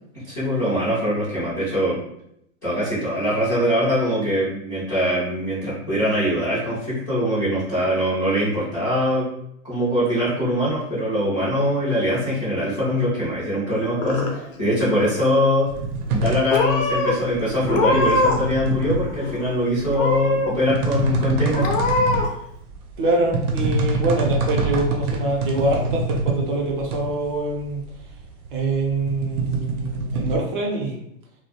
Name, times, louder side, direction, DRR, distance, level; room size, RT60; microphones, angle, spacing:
voice 1, 0.3-2.0 2.6-9.3 9.6-15.7 16.1-21.7, equal, 15° left, -13 dB, 0.4 m, -22 dB
Purr / Meow, 13.7-14.6 14.9-15.4 16.1-16.2 16.5-17.1 17.6-18.5 18.8-19.5 19.9-20.5 21.0-21.1 21.5-22.3, left 2 dB, 65° left, 0.7 m, -23 dB
sound 1, 15.7-30.4, right 2 dB, 85° right, 0.7 m, -26 dB
voice 2, 23.0-27.8 28.5-31.0, right 2 dB, 40° right, -1 dB, 0.6 m, -24 dB
2.2 x 2.1 x 2.8 m, 0.74 s
hypercardioid pair, 160°, 42 cm